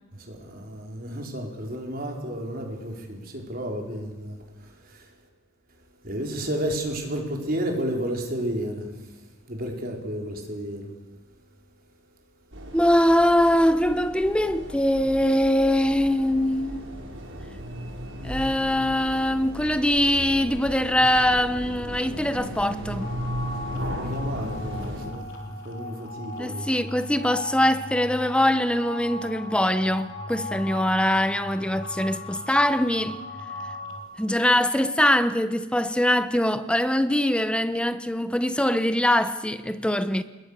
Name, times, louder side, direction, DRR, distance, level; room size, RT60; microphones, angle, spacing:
voice 1, 0.1-5.1 6.0-8.9 9.5-10.9 23.7-26.7, right 1 dB, 45° right, 4.9 m, -32 dB
sound 1, 12.5-25.0, equal, 60° right, 5.5 m, -36 dB
voice 2, 12.7-16.9 18.2-23.1 26.4-33.2 34.2-40.2, left 1 dB, 5° left, 1.0 m, -22 dB
sound 2, 23.0-34.0, left 2 dB, 60° left, 4.1 m, -37 dB
27.5 x 22.0 x 6.8 m
head